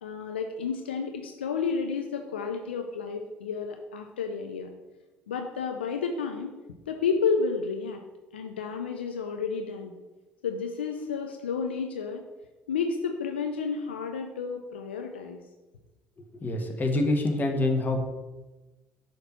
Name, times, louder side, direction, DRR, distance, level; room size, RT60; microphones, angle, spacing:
voice 1, 0.0-4.7 5.3-6.5 6.9-8.0 8.3-10.0 10.4-12.2 12.7-15.4, left 5 dB, 80° left, 4 dB, 0.4 m, -31 dB
voice 2, 16.4-18.0, left 2 dB, 35° left, 3 dB, 1.2 m, -26 dB
6.8 x 2.9 x 5.7 m, 1.1 s
figure-of-eight pair, 50°, 6 cm